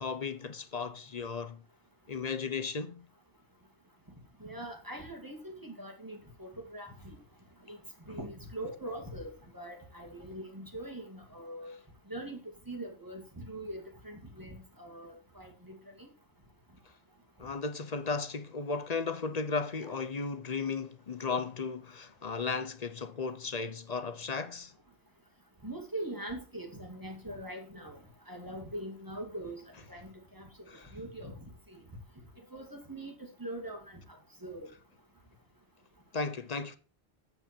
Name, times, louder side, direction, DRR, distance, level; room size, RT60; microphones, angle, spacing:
voice 1, 0.0-1.6 2.1-3.1 8.1-8.2 17.4-24.7 30.7-30.9 36.1-36.8, left 4 dB, 40° left, 0.8 m, -35 dB
voice 2, 4.4-7.2 7.7-7.8 8.1-11.7 12.1-12.4 12.7-16.1 19.8-20.0 25.6-28.0 28.3-30.5 30.9-31.3 31.7-31.8 32.5-34.0 34.4-34.7, right 1 dB, 20° right, 2.3 m, -42 dB
8.7 x 7.9 x 4.4 m
omnidirectional pair, 1.1 m